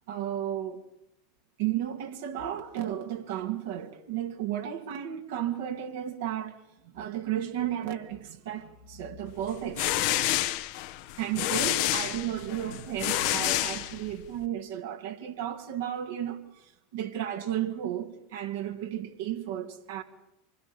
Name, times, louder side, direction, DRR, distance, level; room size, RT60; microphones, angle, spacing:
voice 1, 0.1-0.8 1.6-6.6 6.9-10.2 11.2-20.0, right 11 dB, 70° right, 2.5 m, -33 dB
sound 1, 9.5-14.4, left 15 dB, 60° left, 1.1 m, -29 dB
26.0 x 21.0 x 7.1 m
hypercardioid pair, 85°, 0 cm